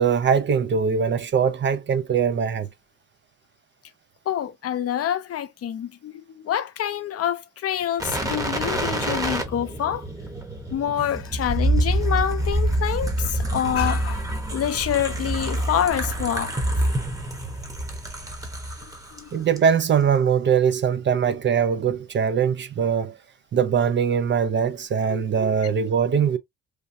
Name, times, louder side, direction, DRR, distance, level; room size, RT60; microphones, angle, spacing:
voice 1, 0.0-2.7 19.3-23.1 23.5-26.4, right 7 dB, 40° right, 0.4 m, -21 dB
voice 2, 4.3-6.1 6.4-10.0 10.7-14.2 14.5-16.5 19.2-19.3 25.1-25.3, left 10 dB, 50° left, 0.6 m, -26 dB
sound 1, 8.0-19.2 19.6-19.7, right 1 dB, 10° right, 0.8 m, -26 dB
3.2 x 2.2 x 2.6 m
cardioid pair, 90°, 30 cm